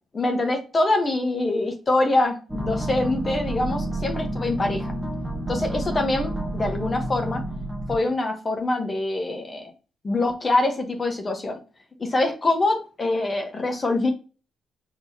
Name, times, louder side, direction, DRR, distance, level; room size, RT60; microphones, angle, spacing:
voice 1, 0.1-4.8 5.5-7.4 7.9-9.7 10.0-11.6 12.0-14.1, left 2 dB, 35° left, 3 dB, 1.2 m, -24 dB
sound 1, 2.5-8.0, right 1 dB, ahead, 1.1 m, -29 dB
4.6 x 3.8 x 2.9 m, 0.33 s
supercardioid pair, 65°, 0 cm